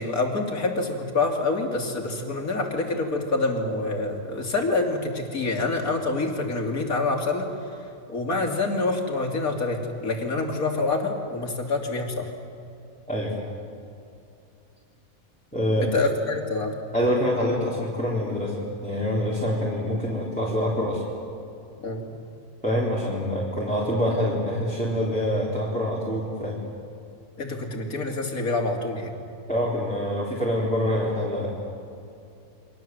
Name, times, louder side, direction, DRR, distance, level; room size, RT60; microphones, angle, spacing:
voice 1, 0.0-7.5 8.1-12.3 15.8-16.7 21.8-22.2 27.4-29.1, left 3 dB, 65° left, 2 dB, 3.3 m, -26 dB
voice 2, 15.5-15.9 16.9-21.0 22.6-26.6 29.5-31.5, equal, 5° left, -6 dB, 3.9 m, -25 dB
29.5 x 23.0 x 7.8 m, 2.6 s
omnidirectional pair, 1.6 m